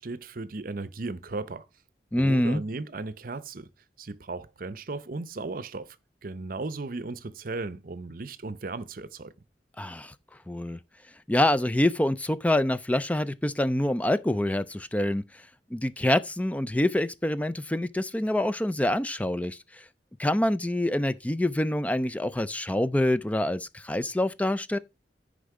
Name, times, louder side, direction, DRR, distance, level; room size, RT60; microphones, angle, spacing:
voice 1, 0.0-1.6 2.2-3.7 4.0-6.0 6.2-9.3, right 3 dB, 50° right, 0.7 m, -36 dB
voice 2, 2.1-2.6 9.8-10.1 10.5-10.8 11.3-15.2 15.7-19.8 20.2-24.8, left 1 dB, 10° left, 0.4 m, -26 dB
10.0 x 5.2 x 4.8 m
head